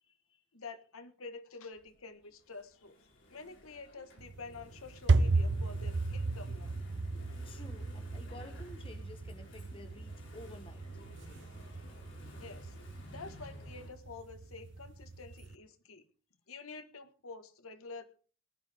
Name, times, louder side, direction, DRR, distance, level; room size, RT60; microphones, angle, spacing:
voice 1, 0.0-0.4 7.4-10.9, left 2 dB, 25° left, 7 dB, 1.2 m, -52 dB
voice 2, 0.5-6.8 12.4-12.8 13.1-16.0 16.5-18.0, left 4 dB, 80° left, 10 dB, 1.6 m, -48 dB
Engine / Mechanisms, 1.7-13.9, left 1 dB, 55° left, 4.4 m, -55 dB
sound 1, 4.2-15.5, right 3 dB, 55° right, 0.6 m, -35 dB
19.0 x 12.0 x 3.6 m, 0.37 s
head